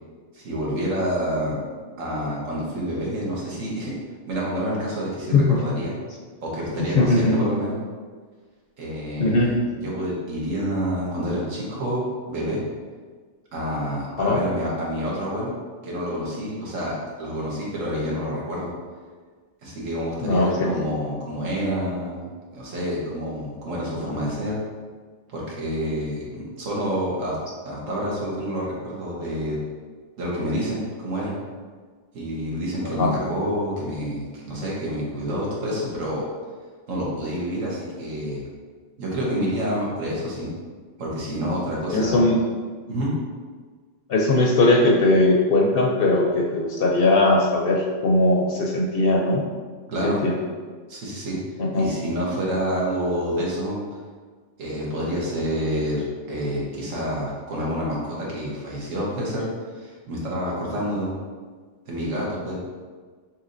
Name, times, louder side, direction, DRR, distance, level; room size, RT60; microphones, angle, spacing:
voice 1, 0.3-1.6 2.0-3.9 4.3-5.9 6.4-7.8 8.8-12.6 13.5-15.5 15.8-18.7 19.6-24.6 25.3-27.4 27.6-29.6 30.2-31.4 32.1-36.3 36.9-38.5 39.0-40.5 41.0-42.2 42.9-43.1 49.9-50.2 50.9-51.4 51.8-53.8 54.6-59.5 59.7-61.1 61.9-62.6, equal, 85° right, -4 dB, 1.5 m, -28 dB
voice 2, 5.3-5.6 6.8-7.5 9.2-9.6 14.1-14.4 20.2-20.7 32.8-33.2 41.9-42.4 44.1-49.4 50.0-50.5 51.6-52.0 60.8-60.9, left 2 dB, 60° left, -1 dB, 0.6 m, -20 dB
6.0 x 2.8 x 2.5 m, 1.5 s
omnidirectional pair, 1.3 m